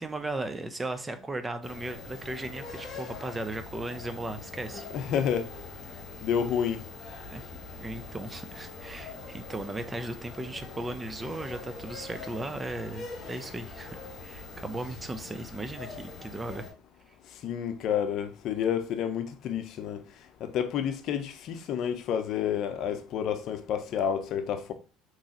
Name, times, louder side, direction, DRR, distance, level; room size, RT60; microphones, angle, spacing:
voice 1, 0.0-4.9 7.3-7.5 7.8-16.7, right 2 dB, 15° right, 0.5 m, -36 dB
sound 1, 1.6-16.7, left 3 dB, 40° left, 1.3 m, -43 dB
voice 2, 4.9-5.4 6.2-6.8 17.4-20.0 20.4-24.7, left 8 dB, 60° left, 0.6 m, -29 dB
3.8 x 3.0 x 2.8 m
supercardioid pair, 100°, 0 cm